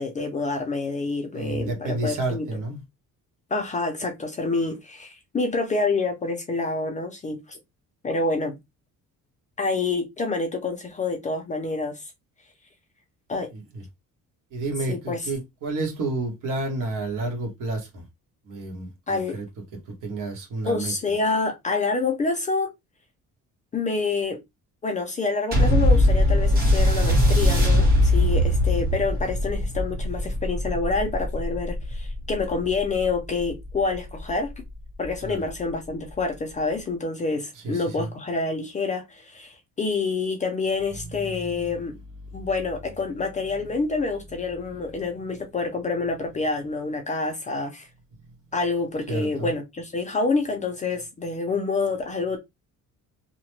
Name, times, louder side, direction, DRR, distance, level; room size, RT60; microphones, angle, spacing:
voice 1, 0.0-2.5 3.5-7.6 8.0-8.6 9.6-12.1 13.3-13.5 14.9-15.2 19.1-19.4 20.6-22.7 23.7-24.4 24.8-34.5 35.0-41.9 42.3-47.9 48.5-52.4, left 3 dB, 25° left, 0.4 m, -27 dB
voice 2, 1.3-2.8 13.5-13.8 14.5-18.0 18.4-19.5 19.9-20.9 35.2-35.4 37.5-38.1 41.4-41.7 42.3-42.5 49.1-49.5, right 2 dB, 70° right, 1.3 m, -30 dB
sound 1, 25.5-34.3 35.0-35.1, left 1 dB, 30° right, 1.5 m, -21 dB
2.9 x 2.1 x 3.1 m
cardioid pair, 180°, 33 cm